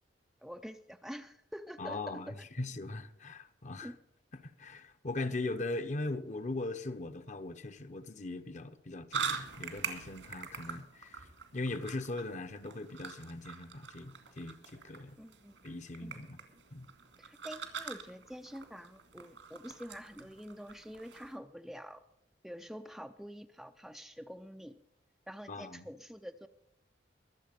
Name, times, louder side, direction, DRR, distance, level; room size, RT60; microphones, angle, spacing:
voice 1, 0.4-2.3 3.8-4.0 15.2-15.6 16.0-16.2 17.2-22.0 22.4-24.7 25.3-26.5, equal, ahead, 0.4 m, -46 dB
voice 2, 1.8-3.9 4.3-11.2 11.5-15.2 15.6-16.4 16.7-16.9 25.5-25.8, left 2 dB, 40° left, 0.9 m, -40 dB
sound 1, 9.1-21.4, right 6 dB, 85° right, 2.2 m, -44 dB
22.5 x 7.6 x 5.1 m
head